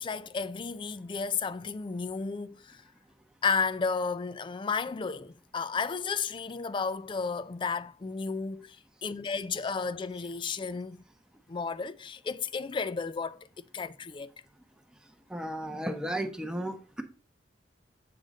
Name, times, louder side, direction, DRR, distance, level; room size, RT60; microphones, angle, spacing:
voice 1, 0.0-2.8 3.4-8.8 9.0-11.0 11.5-13.4 13.7-14.3, left 5 dB, 30° left, 0.3 m, -33 dB
voice 2, 15.3-17.0, right 1 dB, 5° right, 0.8 m, -34 dB
7.6 x 3.8 x 5.1 m
head